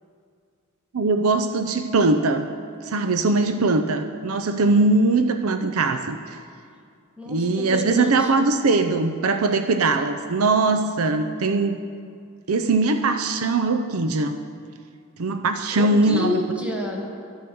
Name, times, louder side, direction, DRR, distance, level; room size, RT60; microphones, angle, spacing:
voice 1, 0.9-2.5 2.8-6.4 7.3-11.8 12.5-14.4 15.2-16.4, right 3 dB, 70° right, 8 dB, 0.6 m, -21 dB
voice 2, 7.2-8.3 15.7-17.0, left 1 dB, 5° right, -1 dB, 1.7 m, -29 dB
11.0 x 11.0 x 7.0 m, 2.3 s
head